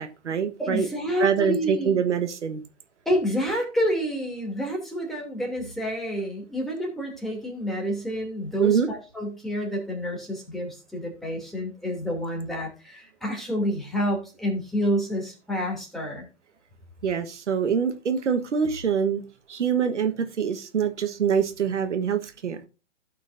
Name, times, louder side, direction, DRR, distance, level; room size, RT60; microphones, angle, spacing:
voice 1, 0.0-0.9 1.2-2.6 8.6-8.9 17.0-19.2 19.5-22.6, right 7 dB, 70° right, 8 dB, 1.4 m, -25 dB
voice 2, 0.6-2.0 3.0-16.3, equal, ahead, -2 dB, 2.8 m, -28 dB
16.5 x 6.1 x 2.7 m, 0.31 s
hypercardioid pair, 135°, 37 cm